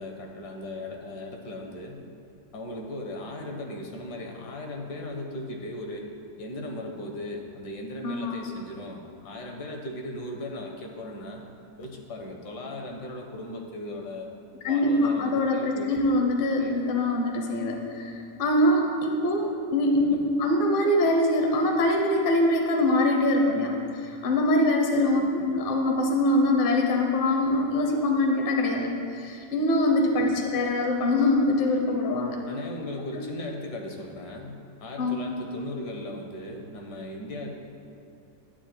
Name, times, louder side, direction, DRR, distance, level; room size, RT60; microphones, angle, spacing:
voice 1, 0.0-2.0 2.5-6.1 6.4-11.4 11.8-14.3 14.6-16.2 16.5-16.8 20.1-20.2 25.4-25.5 30.5-30.6 32.5-37.5, left 1 dB, 70° left, 2 dB, 1.4 m, -37 dB
voice 2, 8.0-8.4 14.6-32.4 35.0-35.2, left 1 dB, 50° left, 2 dB, 0.6 m, -24 dB
9.6 x 8.9 x 2.2 m, 2.4 s
omnidirectional pair, 1.9 m